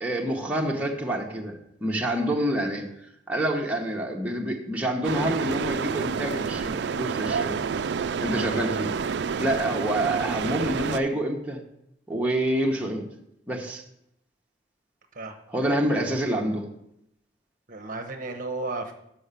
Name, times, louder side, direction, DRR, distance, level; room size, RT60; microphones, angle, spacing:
voice 1, 0.0-7.5 8.2-8.9 9.4-11.6 12.1-13.0 13.5-13.8 15.5-16.7, right 1 dB, 10° right, -1 dB, 0.9 m, -27 dB
sound 1, 5.0-11.0, right 6 dB, 60° right, 0.3 m, -29 dB
voice 2, 8.3-8.6 15.1-15.4 17.7-18.9, right 3 dB, 45° right, 4 dB, 0.8 m, -34 dB
6.3 x 5.6 x 6.8 m, 0.79 s
head